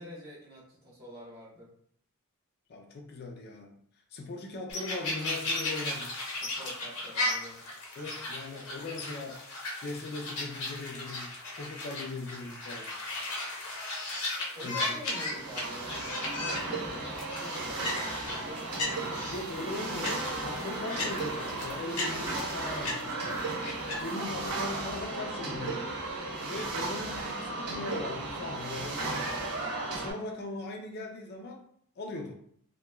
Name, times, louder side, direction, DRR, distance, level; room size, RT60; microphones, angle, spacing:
voice 1, 0.0-1.7 6.4-7.6 14.5-19.1 23.7-24.0, equal, 45° right, -6 dB, 0.9 m, -46 dB
voice 2, 2.7-3.8 4.1-6.2 8.0-9.4 9.8-12.9 14.6-15.0 18.3-18.4 19.0-23.5 24.0-25.9 26.4-29.4 29.9-31.6 32.0-32.4, left 2 dB, 45° left, 2 dB, 0.3 m, -40 dB
sound 1, 4.7-24.2, left 2 dB, 85° left, 0.8 m, -36 dB
sound 2, 14.9-30.1, right 2 dB, 85° right, 0.8 m, -35 dB
2.9 x 2.1 x 2.2 m, 0.65 s
head